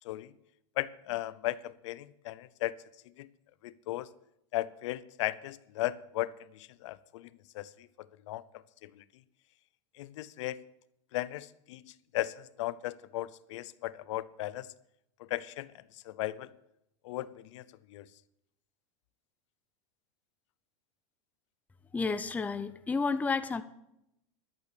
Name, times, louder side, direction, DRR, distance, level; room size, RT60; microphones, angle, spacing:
voice 1, 0.8-2.7 3.2-3.3 3.6-4.1 4.5-7.3 7.5-7.9 8.3-9.0 10.0-10.6 11.1-14.7 15.2-15.7 16.0-16.5 17.0-18.1, left 16 dB, 70° left, 18 dB, 0.7 m, -36 dB
voice 2, 21.9-23.6, left 4 dB, 10° left, 11 dB, 0.6 m, -31 dB
11.0 x 8.3 x 8.5 m, 0.81 s
supercardioid pair, 140°, 16 cm